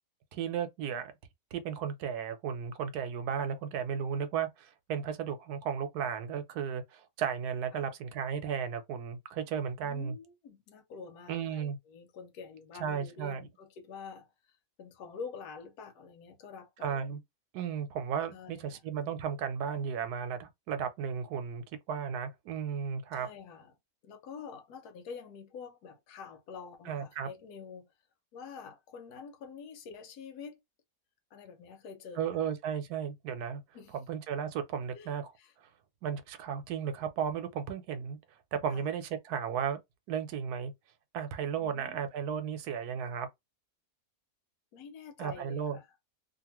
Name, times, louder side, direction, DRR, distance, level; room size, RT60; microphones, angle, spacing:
voice 1, 0.3-1.1 1.5-10.2 11.3-11.8 12.8-13.5 16.8-17.2 17.5-23.3 26.9-27.3 32.2-33.6 33.9-35.3 36.0-38.2 38.5-39.8 40.1-40.7 41.1-43.3 45.2-45.8, right 7 dB, 90° right, 1.2 m, -34 dB
voice 2, 9.8-17.0 18.3-18.8 23.1-23.7 24.0-27.9 28.3-30.6 31.3-32.5 33.7-34.0 34.9-35.1 35.4-35.5 38.7-38.9 41.6-42.1 44.7-45.9, left 5 dB, 85° left, 1.3 m, -47 dB
2.8 x 2.5 x 2.9 m
omnidirectional pair, 1.6 m